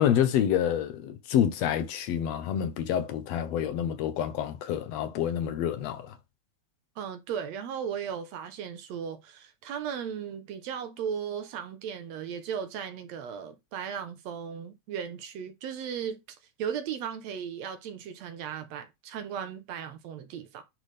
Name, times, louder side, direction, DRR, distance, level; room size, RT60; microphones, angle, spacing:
voice 1, 0.0-6.1, left 9 dB, 70° left, 1.8 m, -27 dB
voice 2, 7.0-16.2 16.6-20.6, right 8 dB, 70° right, 2.0 m, -36 dB
10.0 x 3.5 x 3.3 m
omnidirectional pair, 3.4 m